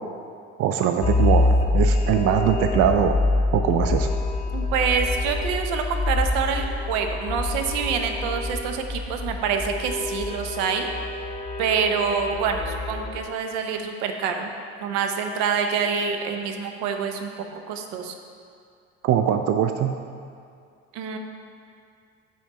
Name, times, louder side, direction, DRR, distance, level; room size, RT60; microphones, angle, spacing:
voice 1, 0.6-3.2 3.5-4.1 19.0-19.9, right 9 dB, 45° right, 6 dB, 0.4 m, -22 dB
sound 1, 1.0-13.2, left 2 dB, 20° left, 0.7 m, -26 dB
voice 2, 4.5-10.9 11.6-14.5 14.8-18.1 20.9-21.2, right 6 dB, 70° right, 5 dB, 0.7 m, -26 dB
5.8 x 4.4 x 5.4 m, 2.3 s
hypercardioid pair, 70°, 34 cm